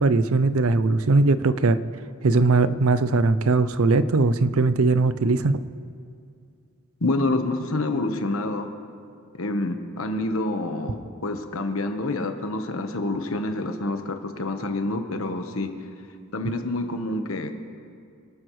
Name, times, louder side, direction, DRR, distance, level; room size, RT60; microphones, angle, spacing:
voice 1, 0.0-1.8 2.2-5.6, right 3 dB, 90° right, 14 dB, 0.6 m, -20 dB
voice 2, 7.0-8.7 9.3-11.0 11.2-15.7 16.3-17.5, left 2 dB, 75° left, 6 dB, 1.2 m, -27 dB
26.0 x 12.5 x 3.2 m, 2.4 s
head